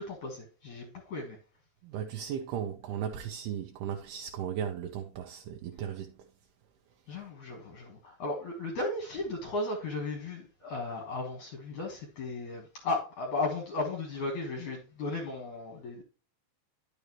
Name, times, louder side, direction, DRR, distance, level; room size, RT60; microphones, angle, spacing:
voice 1, 0.0-1.4 7.1-16.0, left 2 dB, 60° left, 2.5 m, -35 dB
voice 2, 1.8-6.2, right 9 dB, 80° right, 2.6 m, -36 dB
10.5 x 6.8 x 3.0 m
omnidirectional pair, 4.8 m